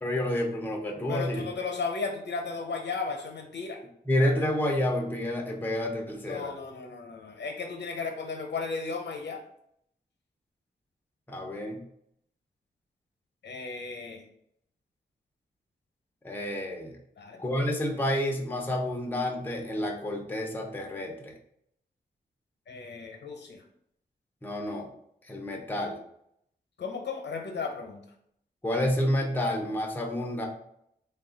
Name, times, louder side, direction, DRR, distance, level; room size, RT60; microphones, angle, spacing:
voice 1, 0.0-1.5 4.1-6.5 11.3-11.8 16.2-17.0 17.4-21.3 24.4-24.9 25.2-26.0 28.6-30.5, left 1 dB, 10° left, 1 dB, 0.6 m, -29 dB
voice 2, 1.1-3.8 6.3-9.4 13.4-14.2 17.2-17.4 22.7-23.6 26.8-28.0, left 4 dB, 70° left, 3 dB, 0.8 m, -35 dB
3.9 x 2.3 x 3.8 m, 0.72 s
wide cardioid pair, 125°, 18 cm